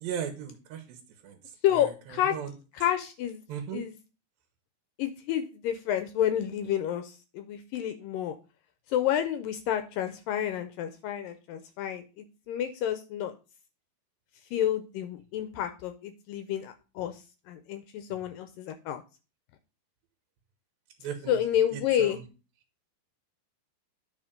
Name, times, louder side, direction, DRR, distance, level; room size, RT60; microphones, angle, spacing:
voice 1, 0.0-0.8 1.2-1.4 2.3-2.5 3.5-3.8 21.0-21.4 22.0-22.1, right 8 dB, 75° right, 5 dB, 2.7 m, -35 dB
voice 2, 1.6-2.4 2.7-3.4 3.7-4.0 5.0-8.4 8.9-13.4 14.5-19.0 21.3-22.2, left 10 dB, 80° left, 8 dB, 2.1 m, -30 dB
9.5 x 4.3 x 5.0 m, 0.33 s
omnidirectional pair, 4.4 m